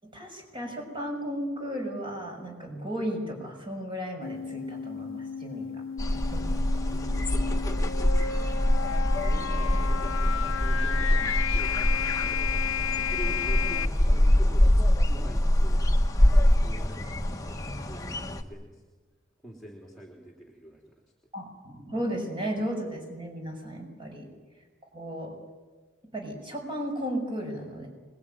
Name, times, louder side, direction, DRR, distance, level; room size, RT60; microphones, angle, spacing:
voice 1, 0.0-5.8 6.3-6.5 6.9-7.3 21.3-24.3 24.9-25.4 26.1-27.9, equal, 25° right, 2 dB, 6.5 m, -35 dB
sound 1, 4.2-13.9, left 7 dB, 80° left, 0.8 m, -33 dB
sound 2, 6.0-18.4, left 1 dB, 15° left, 1.3 m, -24 dB
voice 2, 7.3-8.3 9.2-14.7 15.0-15.9 16.6-18.8 19.4-21.0, right 1 dB, ahead, 0 dB, 3.4 m, -46 dB
25.5 x 21.5 x 9.1 m, 1.3 s
head